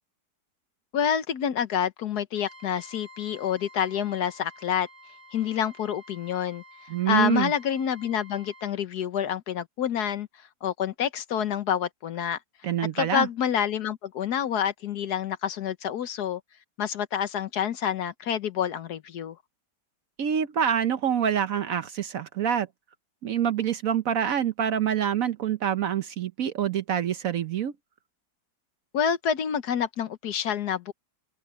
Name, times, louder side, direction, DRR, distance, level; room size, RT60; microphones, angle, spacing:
voice 1, 0.9-4.9 5.3-6.6 7.1-10.3 10.6-12.4 12.8-16.4 16.8-19.4 28.9-30.9, left 9 dB, 65° left, 1.5 m, -28 dB
Trumpet, 2.3-8.8, equal, 20° right, 4.1 m, -50 dB
voice 2, 6.9-7.5 12.6-13.3 20.2-22.7 23.2-27.7, right 9 dB, 60° right, 1.0 m, -26 dB
omnidirectional pair, 1.9 m